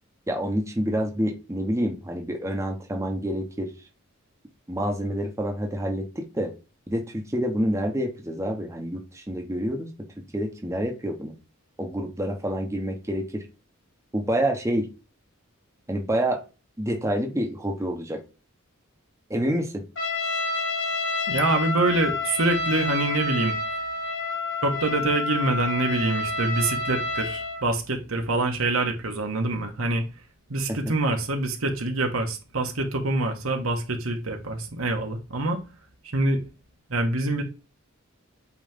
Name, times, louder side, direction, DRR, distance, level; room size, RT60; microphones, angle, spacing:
voice 1, 0.3-3.7 4.7-6.5 6.9-10.1 10.3-11.3 11.8-13.4 14.1-14.9 15.9-16.4 16.8-18.2 19.3-19.8 30.7-30.8, equal, 15° right, 0.9 m, -27 dB
Trumpet, 20.0-27.6, left 3 dB, 60° left, 1.7 m, -29 dB
voice 2, 21.3-23.6 24.6-30.0 30.5-35.6 36.1-36.4 36.9-37.4, right 2 dB, 75° right, 1.4 m, -25 dB
8.4 x 3.1 x 3.6 m
head